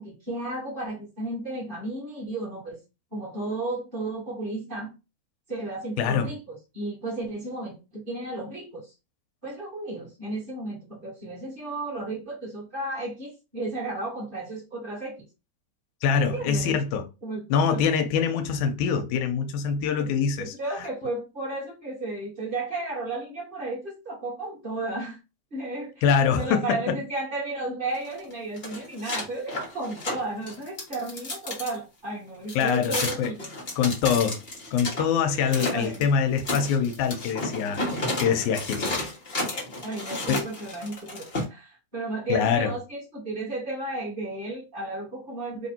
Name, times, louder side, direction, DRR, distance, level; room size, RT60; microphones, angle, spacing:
voice 1, 0.0-2.8 3.1-4.9 5.5-8.9 9.4-15.1 16.1-16.8 17.2-17.8 20.0-20.1 20.4-25.2 25.5-26.0 26.4-33.5 35.3-36.0 39.8-45.7, right 2 dB, 25° right, 1.1 m, -33 dB
voice 2, 6.0-6.3 16.0-17.1 17.5-20.5 26.0-27.0 32.6-33.3 33.8-34.4 34.7-37.9 38.2-39.0 40.3-40.4 42.3-42.7, left 6 dB, 90° left, 2.1 m, -24 dB
sound 1, 27.9-31.7 32.5-35.0 35.5-36.0 36.4-41.4, left 2 dB, 50° left, 0.6 m, -32 dB
4.6 x 2.5 x 4.2 m
omnidirectional pair, 3.5 m